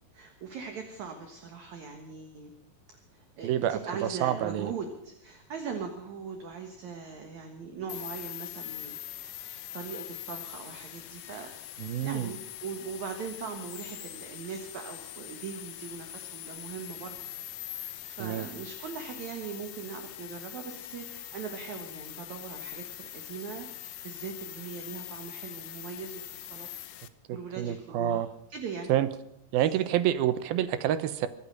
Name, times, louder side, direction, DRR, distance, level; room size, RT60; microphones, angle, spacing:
voice 1, 0.1-2.5 2.9-9.0 9.4-17.2 17.7-23.7 24.0-26.2 26.5-26.7 27.3-28.9 29.5-29.6, right 6 dB, 60° right, 5 dB, 2.5 m, -40 dB
voice 2, 3.4-3.8 4.2-4.7 11.8-12.3 18.2-18.5 27.6-28.3 28.9-29.1 29.5-31.3, right 11 dB, 80° right, 13 dB, 2.6 m, -27 dB
sound 1, 7.9-27.1, left 13 dB, 75° left, 2.2 m, -43 dB
23.5 x 8.8 x 6.5 m, 0.75 s
omnidirectional pair, 4.4 m